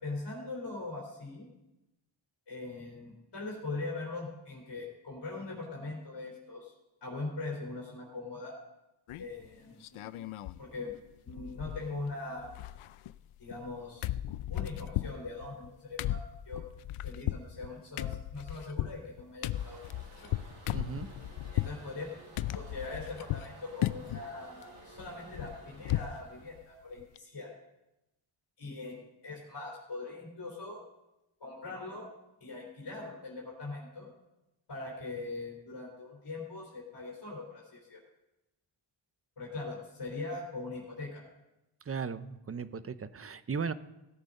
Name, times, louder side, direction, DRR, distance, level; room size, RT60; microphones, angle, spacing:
voice 1, 0.0-1.5 2.5-6.7 7.0-8.6 9.2-10.1 10.6-10.9 11.2-12.5 13.4-14.1 14.5-16.6 17.0-19.8 20.2-20.3 21.5-22.1 22.5-27.6 28.6-30.8 31.4-32.1 32.4-34.1 34.7-38.0 39.4-41.2, left 3 dB, 55° left, -3 dB, 3.6 m, -41 dB
sound 1, 9.1-9.4 9.8-10.6 10.9-11.0 11.3-12.1 12.4-13.7 14.0-21.8 22.4-23.5 23.8-24.3 24.6-26.2 26.5-26.6 27.0-27.2, left 14 dB, 85° left, 0.5 m, -36 dB
Toilet flush, 19.5-26.6, right 2 dB, 85° right, 5.8 m, -54 dB
voice 2, 20.7-21.1 41.9-43.7, right 6 dB, 30° right, 14 dB, 0.6 m, -36 dB
16.5 x 8.0 x 5.3 m, 0.95 s
wide cardioid pair, 100°, 49 cm